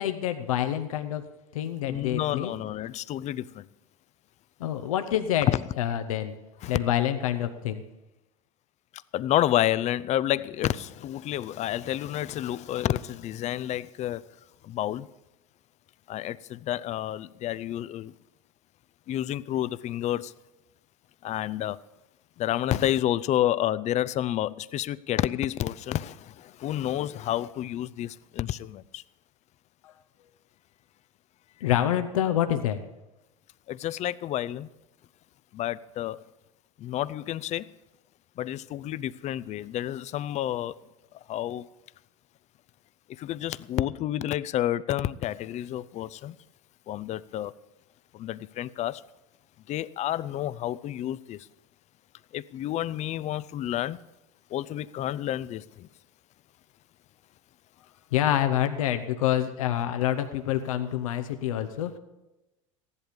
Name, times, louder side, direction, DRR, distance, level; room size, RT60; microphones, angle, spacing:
voice 1, 0.0-2.5 4.6-5.5 5.8-6.4 6.7-7.8 29.8-29.9 31.6-32.8 58.1-62.0, left 11 dB, 80° left, 0.9 m, -27 dB
voice 2, 1.9-3.7 5.5-5.6 6.6-6.8 9.1-14.2 14.6-15.1 16.1-18.1 19.1-20.3 21.2-21.8 22.4-29.0 33.7-34.7 35.5-36.2 36.8-37.7 38.4-40.7 41.3-41.7 43.2-46.4 46.9-47.5 48.1-49.0 49.7-51.5 52.3-54.0 54.5-55.9, left 12 dB, 40° left, 0.5 m, -29 dB
15.5 x 11.0 x 5.1 m
hypercardioid pair, 85°, 17 cm